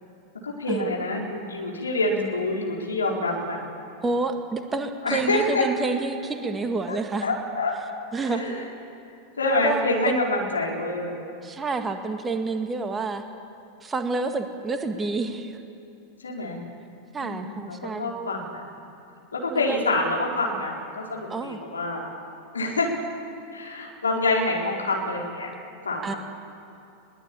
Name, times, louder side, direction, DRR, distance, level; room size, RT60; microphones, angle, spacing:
voice 1, 0.4-3.6 5.0-5.7 6.9-7.8 8.2-8.6 9.4-11.1 16.2-16.6 17.2-18.7 19.3-22.1 22.5-22.9 23.5-25.5 25.8-26.2, left 2 dB, 75° left, -1 dB, 4.6 m, -26 dB
voice 2, 4.0-7.4 8.1-8.6 9.6-10.2 11.4-13.2 13.8-15.6 17.1-18.1 19.5-19.8 21.3-21.6 26.0-26.1, right 3 dB, 15° right, 6 dB, 1.7 m, -28 dB
22.5 x 18.0 x 8.8 m, 2.7 s
figure-of-eight pair, 90°, 0 cm